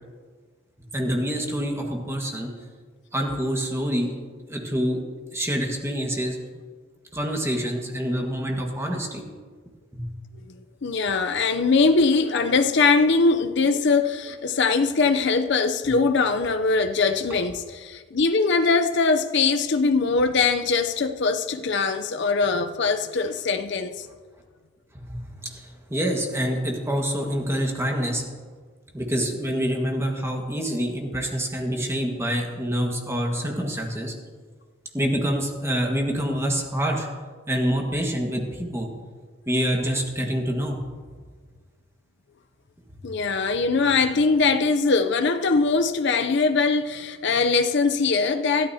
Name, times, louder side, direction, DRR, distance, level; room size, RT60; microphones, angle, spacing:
voice 1, 0.9-2.5 3.1-4.1 4.5-5.0 5.3-6.4 7.1-9.2 9.9-10.1 24.9-28.2 28.9-34.1 34.9-37.1 37.5-38.9 39.5-40.8, equal, 15° right, 1.6 m, -26 dB
voice 2, 10.8-24.1 43.0-48.7, left 4 dB, 60° left, 0.6 m, -22 dB
21.5 x 13.5 x 2.8 m
head